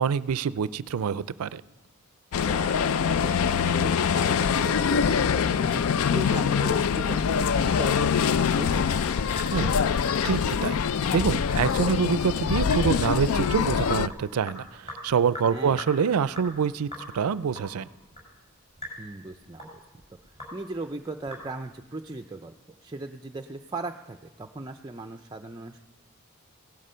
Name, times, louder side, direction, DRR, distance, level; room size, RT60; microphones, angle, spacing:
voice 1, 0.0-1.6 9.5-10.8 11.1-16.9 17.1-17.9, right 6 dB, 85° right, 17 dB, 0.4 m, -26 dB
sound 1, 2.3-14.1, left 6 dB, 75° left, 0.4 m, -24 dB
voice 2, 2.5-3.3 3.6-5.0 5.4-5.8 6.1-8.9 15.5-15.8 19.0-19.7 20.2-22.5 22.8-25.8, right 2 dB, 20° right, 6 dB, 0.4 m, -38 dB
Sink (filling or washing) / Drip, 7.4-21.8, equal, 25° left, 5.6 m, -44 dB
17.5 x 13.0 x 5.6 m, 1.1 s
head